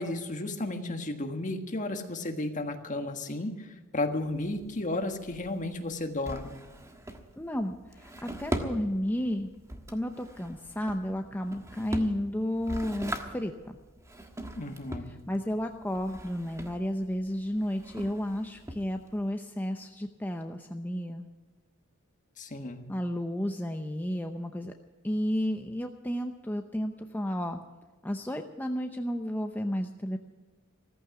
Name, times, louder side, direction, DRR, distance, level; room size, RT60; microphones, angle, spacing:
voice 1, 0.0-6.5 14.5-15.1 22.4-22.9, left 2 dB, 35° left, 5 dB, 1.6 m, -33 dB
Drawer open or close, 4.1-19.3, right 1 dB, 15° right, 1.4 m, -41 dB
voice 2, 7.4-9.5 9.9-13.8 15.1-21.3 22.9-24.7 25.0-27.6 28.0-30.2, equal, 10° left, 4 dB, 0.7 m, -32 dB
14.5 x 14.5 x 6.0 m, 1.3 s
head